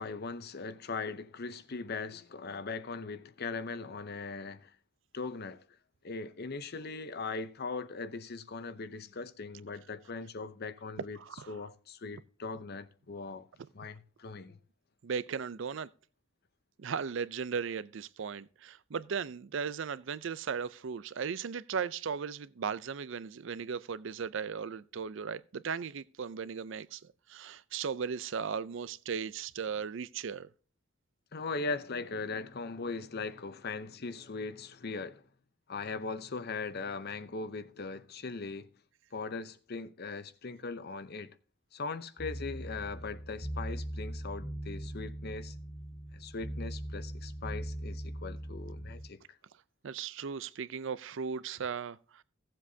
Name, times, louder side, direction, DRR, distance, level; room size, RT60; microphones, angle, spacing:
voice 1, 0.0-4.8 5.1-5.7 6.0-13.5 13.7-14.6 31.3-35.2 35.7-38.7 39.1-41.4 41.7-45.5 46.1-49.4, left 4 dB, 50° left, 0.7 m, -40 dB
voice 2, 11.2-11.5 15.0-15.9 16.8-30.5 49.8-52.2, right 6 dB, 65° right, 0.5 m, -37 dB
sound 1, 42.2-49.1, right 1 dB, 85° left, 2.8 m, -40 dB
16.5 x 7.6 x 2.7 m
head